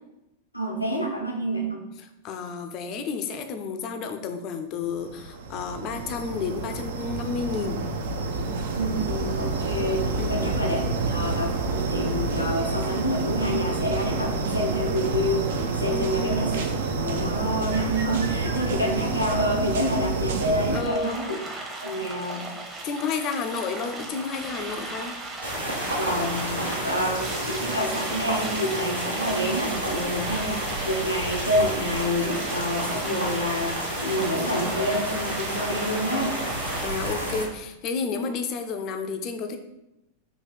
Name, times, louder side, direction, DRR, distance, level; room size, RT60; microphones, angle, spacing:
voice 1, 0.5-1.8 8.8-16.5 17.0-21.4 21.8-22.4 26.0-36.3, equal, 85° left, 0 dB, 0.7 m, -28 dB
voice 2, 2.2-7.8 10.2-10.5 15.9-16.4 20.7-21.2 22.8-25.2 36.8-39.6, left 5 dB, 40° left, 6 dB, 0.5 m, -31 dB
sound 1, 4.9-20.8, right 3 dB, 60° right, 0.5 m, -28 dB
sound 2, 20.7-36.9, right 2 dB, 20° right, 0.8 m, -36 dB
sound 3, 25.4-37.5, right 1 dB, 80° right, 1.0 m, -31 dB
3.9 x 2.7 x 4.2 m, 0.90 s
figure-of-eight pair, 90°, 0 cm